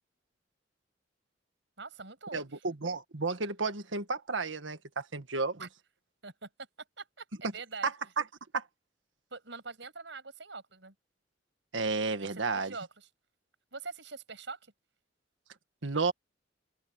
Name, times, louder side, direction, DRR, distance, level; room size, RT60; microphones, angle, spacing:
voice 1, 1.8-2.6 5.6-5.7 6.2-6.5 7.0-7.9 9.3-10.9 12.2-13.1 13.7-14.7, right 4 dB, 70° right, 7.1 m, -44 dB
voice 2, 2.3-5.7 7.8-8.2 8.5-8.6 11.7-12.7 15.8-16.1, right 4 dB, 85° right, 1.7 m, -32 dB
head